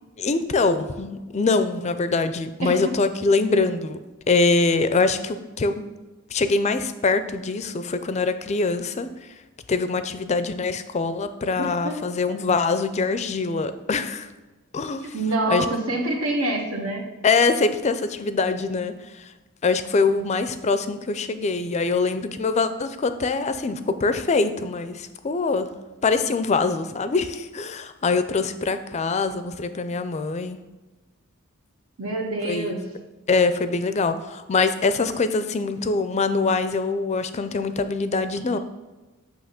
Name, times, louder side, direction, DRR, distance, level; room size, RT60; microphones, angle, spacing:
voice 1, 0.2-4.0 4.3-5.9 6.3-9.1 9.7-14.3 14.7-15.1 15.5-15.7 17.2-19.3 19.6-25.7 26.0-30.6 32.4-32.8 33.3-38.6, left 4 dB, 30° left, 10 dB, 0.4 m, -23 dB
voice 2, 11.6-12.0 15.1-17.0 32.0-32.9, right 2 dB, 75° right, 0 dB, 1.3 m, -26 dB
8.8 x 3.0 x 5.8 m, 1.2 s
head